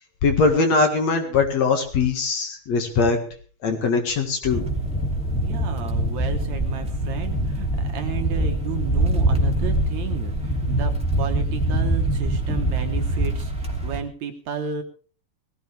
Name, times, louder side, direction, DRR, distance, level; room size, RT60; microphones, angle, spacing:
voice 1, 0.2-3.2 3.6-4.7, left 4 dB, 55° left, 5 dB, 2.9 m, -21 dB
sound 1, 4.4-14.0, right 1 dB, ahead, 2.2 m, -24 dB
voice 2, 5.4-14.8, right 8 dB, 65° right, 5 dB, 2.4 m, -33 dB
19.0 x 15.5 x 3.4 m, 0.40 s
omnidirectional pair, 3.8 m